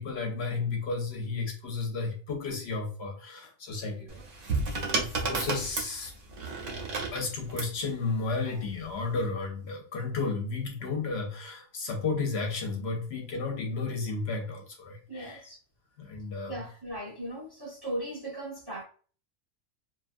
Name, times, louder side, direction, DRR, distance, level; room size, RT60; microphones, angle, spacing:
voice 1, 0.0-4.2 4.7-6.1 6.4-6.5 7.1-15.5 16.0-16.6, left 4 dB, 60° left, 0.8 m, -33 dB
sound 1, 4.1-7.8 8.8-9.2, right 3 dB, 80° right, 1.2 m, -32 dB
voice 2, 15.1-15.6 16.5-18.8, right 1 dB, 25° right, 0.6 m, -38 dB
2.7 x 2.4 x 2.4 m
omnidirectional pair, 1.3 m